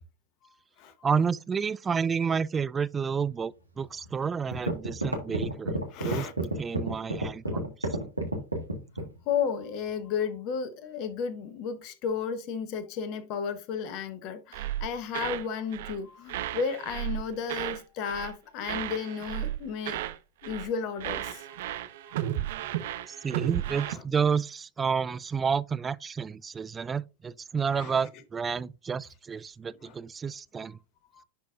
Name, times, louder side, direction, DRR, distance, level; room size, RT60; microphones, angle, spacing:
voice 1, 1.0-5.8 6.0-7.9 23.1-30.8, right 6 dB, 20° right, 0.3 m, -30 dB
sound 1, 4.1-4.2 4.5-9.2, right 2 dB, 85° right, 1.6 m, -30 dB
voice 2, 5.9-6.3 9.3-20.0 20.4-21.4 22.1-22.2 23.8-24.0 27.7-27.9 29.8-29.9 31.1-31.2, left 6 dB, 40° left, 0.9 m, -33 dB
sound 2, 14.5-15.5 15.7-16.0 16.3-17.8 18.1-18.4 18.6-20.2 20.4-20.7 21.0-23.9, right 12 dB, 55° right, 0.7 m, -34 dB
11.0 x 4.1 x 2.5 m
figure-of-eight pair, 90°, 0 cm